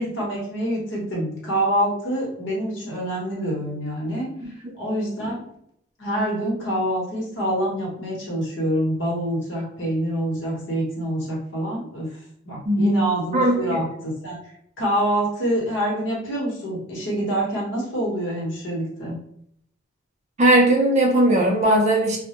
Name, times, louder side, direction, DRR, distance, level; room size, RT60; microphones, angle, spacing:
voice 1, 0.0-4.3 4.8-5.4 6.0-12.1 12.4-14.4 14.8-19.2, right 1 dB, 60° left, -4 dB, 0.9 m, -26 dB
voice 2, 12.7-13.0 13.3-13.8 20.4-22.2, right 1 dB, 35° right, 0 dB, 0.4 m, -18 dB
2.1 x 2.0 x 2.8 m, 0.69 s
head